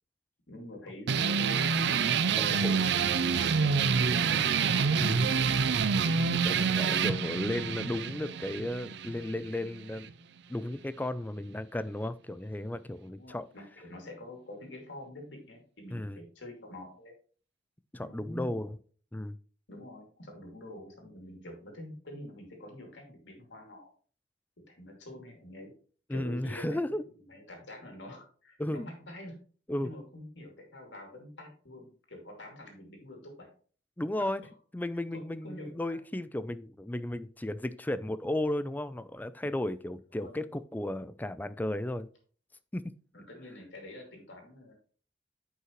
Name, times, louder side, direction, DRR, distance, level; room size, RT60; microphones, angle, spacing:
voice 1, 0.5-1.9 2.5-4.9 13.0-17.1 18.0-18.7 19.7-23.9 24.7-25.7 26.1-26.9 27.3-29.3 29.8-33.5 34.2-34.3 35.1-36.0 40.1-40.3 43.1-44.7, left 1 dB, 90° left, 2 dB, 2.6 m, -46 dB
sound 1, 1.1-10.1, right 5 dB, 65° right, 0.5 m, -27 dB
voice 2, 2.4-3.0 5.0-5.4 6.3-10.1 10.5-13.5 15.9-16.2 17.9-18.8 19.1-19.4 26.1-27.0 28.6-28.9 29.7-29.9 34.0-34.4 34.7-42.1 42.7-42.8, left 1 dB, 10° left, 14 dB, 0.4 m, -34 dB
9.5 x 5.6 x 3.1 m, 0.43 s
head